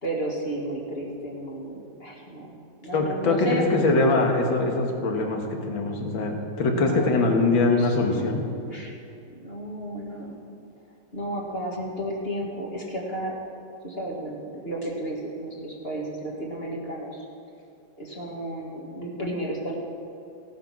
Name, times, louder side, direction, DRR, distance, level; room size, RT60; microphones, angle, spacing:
voice 1, 0.0-3.6 6.7-8.4 8.7-8.9 9.4-10.3 11.1-13.3 13.8-17.2 18.0-19.7, right 1 dB, 30° left, -3 dB, 1.9 m, -33 dB
voice 2, 2.9-8.4, left 2 dB, 65° left, 2 dB, 2.2 m, -23 dB
16.5 x 8.9 x 6.1 m, 2.7 s
omnidirectional pair, 2.4 m